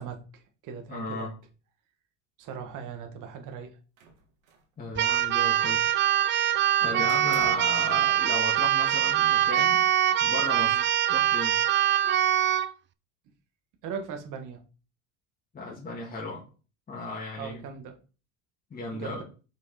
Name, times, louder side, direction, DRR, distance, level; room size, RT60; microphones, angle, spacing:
voice 1, 0.0-1.3 2.4-3.8 6.8-7.1 10.6-10.8 13.8-14.6 17.4-18.0 18.9-19.2, right 6 dB, 55° right, 5 dB, 1.6 m, -39 dB
voice 2, 0.9-1.3 4.8-5.8 6.8-9.9 10.2-10.8 11.1-11.6 15.5-16.4 16.9-17.6 18.7-19.2, left 2 dB, 25° left, -4 dB, 1.9 m, -35 dB
sound 1, 4.0-4.7 5.0-5.9 7.1-7.8, right 4 dB, 90° right, 1.8 m, -51 dB
Keyboard (musical), 5.0-12.7, right 11 dB, 30° right, 0.4 m, -23 dB
5.6 x 5.0 x 4.2 m, 0.36 s
supercardioid pair, 105°, 37 cm